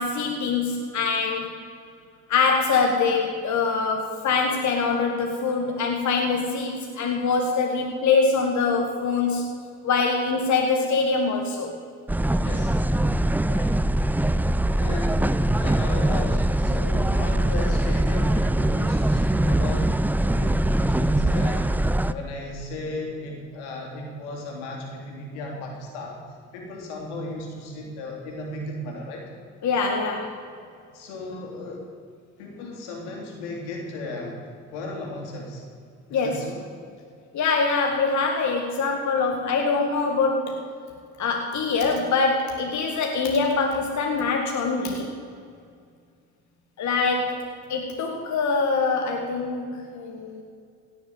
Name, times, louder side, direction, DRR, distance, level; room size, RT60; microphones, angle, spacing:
voice 1, 0.0-1.5 2.3-9.5 9.8-11.7 13.4-13.7 29.6-30.4 36.1-36.4 37.3-40.7 41.2-45.1 46.8-47.4 47.7-50.4, left 4 dB, 55° left, 2 dB, 2.0 m, -24 dB
sound 1, 12.1-22.1, right 1 dB, 5° right, 0.5 m, -22 dB
voice 2, 12.3-12.9 14.7-21.7 22.1-26.2 26.5-29.2 30.9-31.9 32.4-34.4 34.7-35.6 36.1-36.6, left 2 dB, 85° left, 0 dB, 3.4 m, -35 dB
17.0 x 7.1 x 9.0 m, 2.3 s
hypercardioid pair, 60°, 34 cm